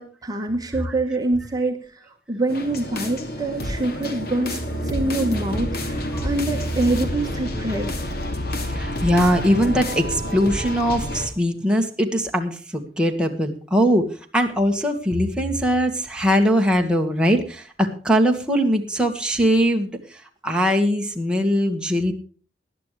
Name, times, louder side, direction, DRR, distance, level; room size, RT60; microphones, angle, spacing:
voice 1, 0.0-1.8 2.3-8.0, right 2 dB, 20° right, 2 dB, 1.5 m, -25 dB
sound 1, 2.5-11.3, equal, 60° left, 2.5 m, -28 dB
voice 2, 8.7-14.1 14.3-19.9 20.4-22.1, equal, 5° right, 1 dB, 1.7 m, -21 dB
19.5 x 11.5 x 3.3 m, 0.39 s
head